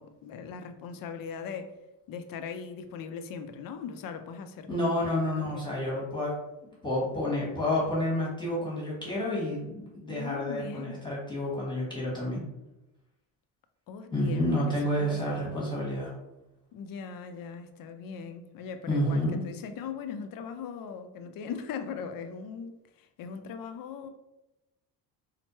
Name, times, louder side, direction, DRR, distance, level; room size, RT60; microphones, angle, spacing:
voice 1, 0.0-1.8 2.1-5.7 10.0-11.0 13.9-15.5 16.7-24.1, left 6 dB, 55° left, 8 dB, 0.5 m, -40 dB
voice 2, 4.7-6.3 6.8-12.4 14.1-16.1 18.9-19.4, left 1 dB, 10° left, -7 dB, 1.4 m, -29 dB
4.2 x 2.1 x 3.0 m, 0.94 s
cardioid pair, 95°, 41 cm